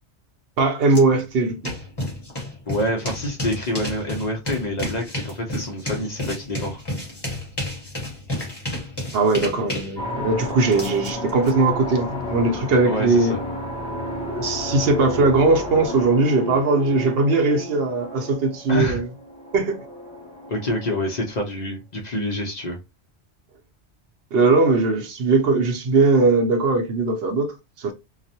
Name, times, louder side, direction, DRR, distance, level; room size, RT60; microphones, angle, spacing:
voice 1, 0.6-1.7 9.1-13.3 14.3-19.1 19.5-19.8 24.3-27.9, right 3 dB, 70° right, 0.8 m, -20 dB
sound 1, 0.9-1.0 1.3-11.5, left 1 dB, 25° left, 0.9 m, -31 dB
voice 2, 2.7-6.8 12.8-13.4 18.7-19.0 20.5-22.8, left 1 dB, 50° left, 0.6 m, -27 dB
sound 2, 10.0-21.4, left 1 dB, 5° left, 0.6 m, -32 dB
2.3 x 2.0 x 2.7 m
omnidirectional pair, 1.1 m